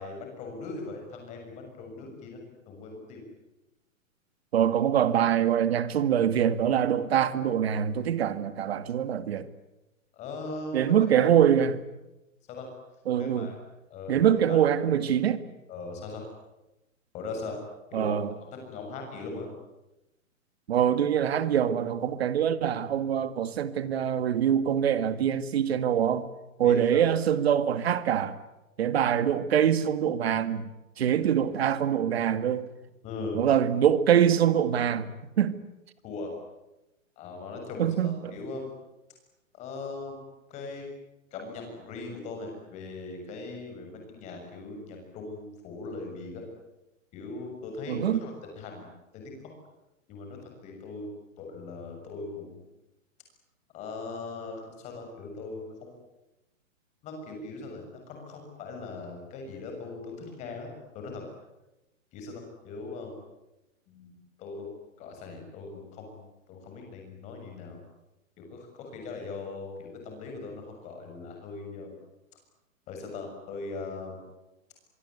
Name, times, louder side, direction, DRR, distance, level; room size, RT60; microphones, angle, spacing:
voice 1, 0.0-3.2 10.1-11.4 12.5-12.7 13.2-13.6 13.9-14.7 15.7-16.2 17.1-17.6 17.9-19.5 26.6-27.0 33.0-33.5 36.0-36.3 37.2-38.7 39.5-40.8 41.3-46.4 47.1-48.9 49.1-49.5 50.1-51.1 51.4-52.6 53.7-55.9 57.0-61.2 62.1-63.2 63.9-64.7 65.0-67.8 68.4-71.9 72.9-74.2, left 3 dB, 15° left, 6.7 m, -40 dB
voice 2, 4.5-9.5 10.7-11.8 13.1-13.5 14.1-15.4 17.9-18.3 20.7-26.3 26.6-28.4 28.8-30.7 31.0-32.7 33.3-35.6 37.8-38.3 47.9-48.2, right 9 dB, 50° right, 2.0 m, -24 dB
24.5 x 24.0 x 9.6 m
hypercardioid pair, 170°, 40 cm